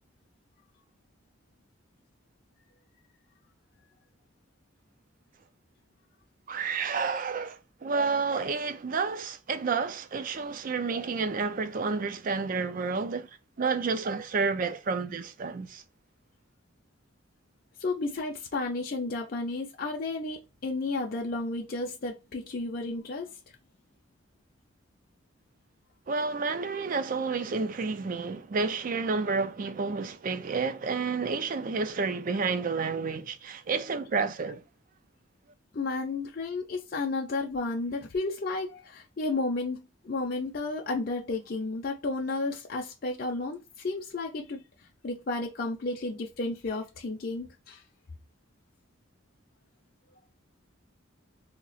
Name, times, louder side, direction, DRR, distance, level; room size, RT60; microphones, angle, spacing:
voice 1, 6.5-13.3 13.6-15.8 26.1-34.6, right 4 dB, 40° right, 0.4 m, -30 dB
voice 2, 17.8-23.4 35.7-44.6 45.0-47.8, left 3 dB, 45° left, 0.5 m, -32 dB
2.9 x 2.4 x 4.0 m
head